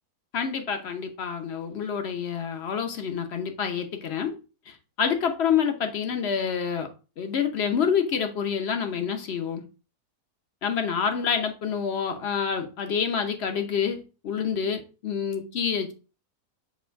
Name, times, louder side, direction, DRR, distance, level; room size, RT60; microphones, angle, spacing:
voice 1, 0.3-4.4 4.7-6.9 7.2-9.6 10.6-15.9, left 7 dB, 50° left, 1.0 m, -27 dB
7.0 x 3.0 x 4.5 m
omnidirectional pair, 1.7 m